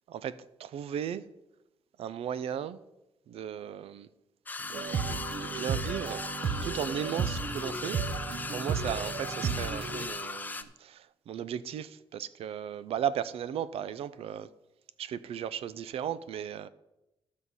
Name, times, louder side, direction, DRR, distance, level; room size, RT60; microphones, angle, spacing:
voice 1, 0.1-1.3 2.0-2.8 3.3-4.1 4.6-6.2 6.6-8.0 8.5-14.5 15.0-16.7, right 9 dB, 85° right, 0.5 m, -36 dB
sound 1, 4.5-10.6, left 3 dB, 20° left, 0.6 m, -38 dB
sound 2, 4.7-10.1, right 5 dB, 60° right, 1.0 m, -34 dB
12.5 x 6.4 x 5.5 m
wide cardioid pair, 140°, 10 cm